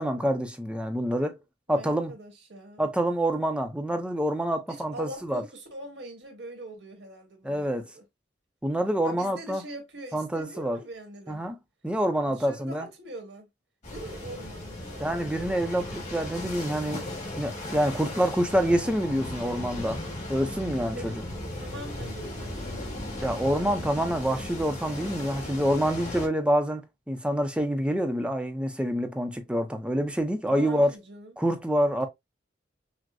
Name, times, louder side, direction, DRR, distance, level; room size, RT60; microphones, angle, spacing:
voice 1, 0.0-1.4 1.7-2.1 2.8-5.4 7.4-7.9 8.6-9.6 10.1-10.8 11.3-11.6 11.8-12.9 15.0-17.1 17.4-20.0 20.3-21.1 23.2-30.9 31.4-32.1, equal, 5° right, 0.6 m, -27 dB
voice 2, 1.7-2.9 4.7-8.0 9.0-11.4 12.3-13.5 13.9-15.1 17.8-18.4 20.4-20.5 20.9-23.5 30.5-31.4, right 1 dB, 90° right, 1.6 m, -43 dB
sound 1, 13.8-26.3, left 1 dB, 40° left, 2.0 m, -37 dB
6.0 x 2.1 x 2.5 m
head